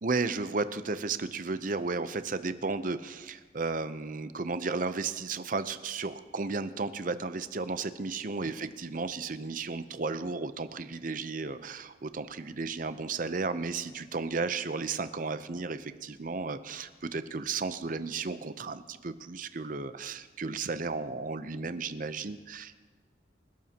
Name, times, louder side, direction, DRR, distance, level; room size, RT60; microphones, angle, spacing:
voice 1, 0.0-22.8, right 4 dB, 45° right, 11 dB, 0.6 m, -34 dB
28.5 x 12.5 x 2.9 m, 1.4 s
head